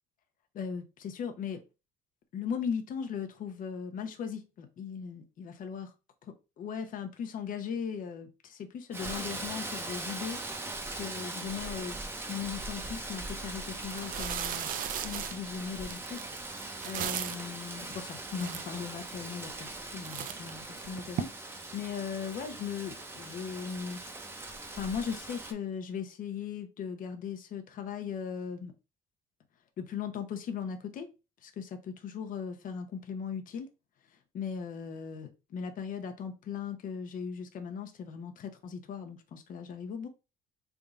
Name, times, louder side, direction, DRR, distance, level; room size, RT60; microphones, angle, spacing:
voice 1, 0.5-1.6 2.3-5.9 6.2-14.7 15.0-24.0 24.7-28.7 29.8-31.1 31.4-33.7 34.1-40.1, left 7 dB, 55° left, 0.8 m, -38 dB
Rain, 8.9-25.5, right 2 dB, 15° right, 0.7 m, -41 dB
sound 1, 13.2-13.3 13.8-17.5 18.1-18.2 18.4-19.1 19.6-19.8 20.0-21.2, right 10 dB, 55° right, 0.4 m, -37 dB
3.5 x 2.4 x 3.9 m
cardioid pair, 110°, 17 cm